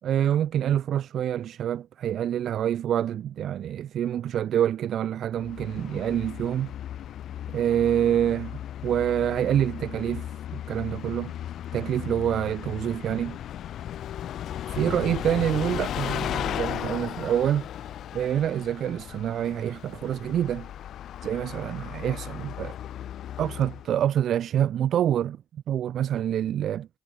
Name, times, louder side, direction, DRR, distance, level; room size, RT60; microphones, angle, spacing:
voice 1, 0.0-6.7 7.5-11.3 11.7-13.4 14.7-17.7 18.1-20.7 21.2-22.8 23.4-25.4 25.7-26.9, right 10 dB, 70° right, 4.7 m, -26 dB
Bus, 5.4-23.9, left 11 dB, 70° left, 4.2 m, -36 dB
cardioid pair, 90°, 0 cm